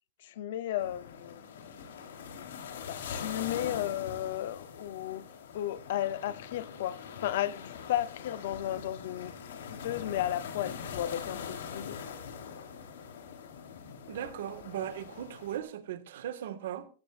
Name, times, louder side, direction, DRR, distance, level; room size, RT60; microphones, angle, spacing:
voice 1, 0.2-1.5 2.9-5.2 5.5-9.3 9.6-12.0, left 12 dB, 50° left, 0.7 m, -34 dB
sound 1, 0.8-15.6, left 7 dB, 70° left, 3.8 m, -43 dB
voice 2, 14.1-16.9, right 10 dB, 55° right, 1.7 m, -38 dB
19.5 x 16.0 x 2.5 m
supercardioid pair, 180°, 0 cm